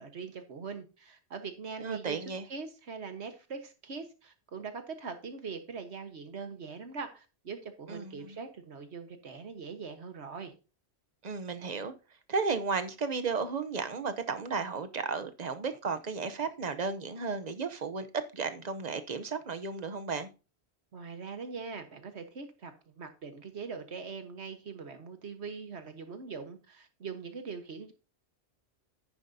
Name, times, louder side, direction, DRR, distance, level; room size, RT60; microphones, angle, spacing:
voice 1, 0.0-10.5 20.9-27.9, right 5 dB, 80° right, 1.6 m, -42 dB
voice 2, 1.8-2.4 7.9-8.4 11.2-11.9 12.3-20.3, right 4 dB, 40° right, 0.9 m, -34 dB
10.5 x 9.4 x 2.7 m
omnidirectional pair, 1.1 m